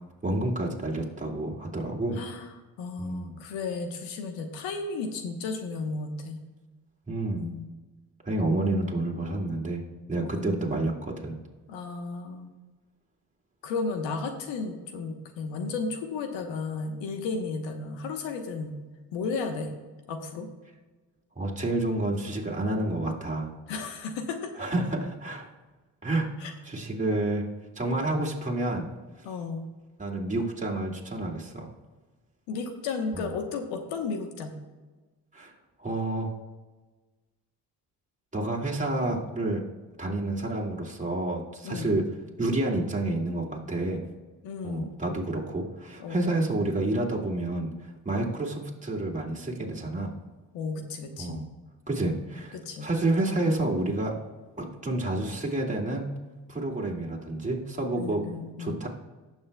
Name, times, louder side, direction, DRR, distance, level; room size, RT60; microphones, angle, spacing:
voice 1, 0.2-2.2 3.0-3.4 7.1-7.5 8.2-11.4 21.4-23.5 24.6-25.5 26.0-27.5 27.8-28.9 30.0-31.7 33.1-33.3 35.3-35.5 35.8-36.3 38.3-39.7 40.0-42.1 42.4-44.0 44.6-50.1 51.2-51.4 51.9-54.2 54.6-56.2 56.5-58.3 58.6-58.9, right 2 dB, 15° right, -2 dB, 2.2 m, -29 dB
voice 2, 2.1-2.5 2.8-6.4 7.3-7.7 10.2-10.7 11.7-12.5 13.6-18.7 19.1-19.7 20.1-20.5 23.7-24.5 26.4-26.5 29.2-29.7 32.5-34.5 41.6-42.0 44.4-44.9 46.0-46.3 50.5-51.5 52.5-52.9 53.3-53.6 57.9-58.8, left 4 dB, 80° left, 6 dB, 1.1 m, -34 dB
18.0 x 6.3 x 2.3 m, 1.3 s
hypercardioid pair, 45°, 45 cm